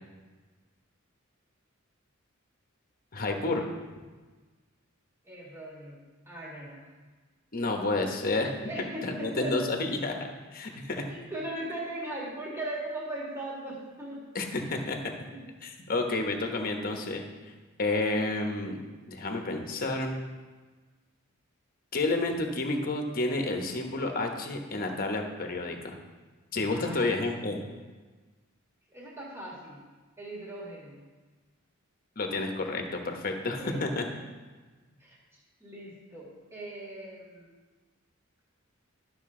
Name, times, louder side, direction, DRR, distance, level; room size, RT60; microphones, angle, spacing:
voice 1, 3.1-3.7 7.5-8.5 9.0-11.1 14.3-15.0 15.6-17.2 17.8-18.8 19.1-20.2 21.9-26.0 26.5-27.7 32.2-34.0, left 2 dB, 45° left, 3 dB, 1.1 m, -30 dB
voice 2, 5.2-6.0 6.3-6.9 8.6-9.6 11.1-14.2 15.3-15.4 26.7-27.3 28.9-29.8 30.2-31.0 33.6-34.2 35.0-35.2 35.6-37.5, right 1 dB, 15° right, -5 dB, 2.0 m, -39 dB
12.0 x 6.5 x 3.8 m, 1.3 s
head